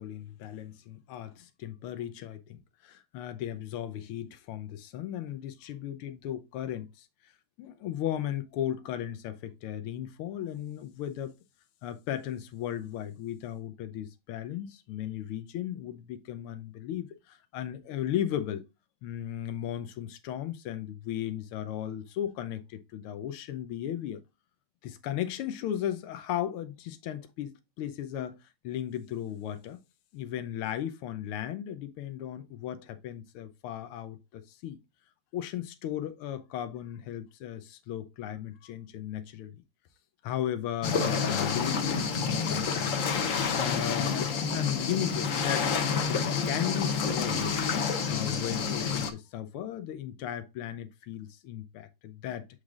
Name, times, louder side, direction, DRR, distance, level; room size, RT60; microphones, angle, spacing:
voice 1, 0.0-7.1 7.6-11.4 11.8-18.6 19.0-24.2 24.8-28.4 28.6-29.8 30.1-34.8 35.3-39.6 40.2-43.0 43.3-47.6 48.1-52.5, left 11 dB, 85° left, 1.6 m, -36 dB
sound 1, 40.8-49.1, left 5 dB, 60° left, 0.9 m, -29 dB
8.3 x 3.3 x 3.7 m
omnidirectional pair, 2.4 m